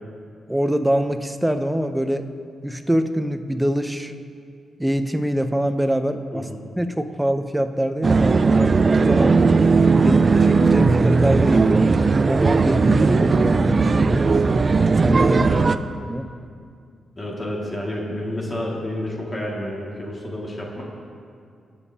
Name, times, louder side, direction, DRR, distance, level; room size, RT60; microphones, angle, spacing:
voice 1, 0.5-2.3 2.6-4.1 4.8-6.5 6.8-9.4 10.0-11.8 12.3-14.3 15.0-15.6 16.1-16.3, equal, 10° right, 8 dB, 0.7 m, -24 dB
sound 1, 8.0-15.8, right 4 dB, 45° right, 0.4 m, -17 dB
voice 2, 11.6-11.9 15.4-15.7 17.2-20.8, left 1 dB, 30° left, -3 dB, 2.1 m, -30 dB
21.5 x 7.3 x 2.8 m, 2.3 s
cardioid pair, 65°, 0 cm